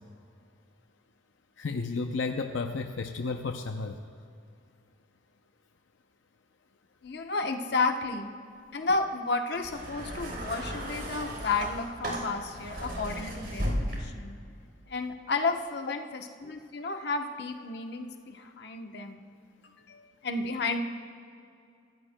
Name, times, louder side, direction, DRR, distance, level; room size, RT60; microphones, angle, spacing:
voice 1, 1.6-4.0 13.2-13.3 15.9-16.0, left 4 dB, 80° left, 5 dB, 0.6 m, -32 dB
voice 2, 7.0-8.3 8.7-14.4 14.9-19.2 19.9-20.8, left 3 dB, 60° left, 4 dB, 0.9 m, -32 dB
sound 1, 9.5-14.3 15.3-15.4, equal, 60° right, 3.7 m, -35 dB
25.0 x 16.0 x 2.2 m, 2.4 s
head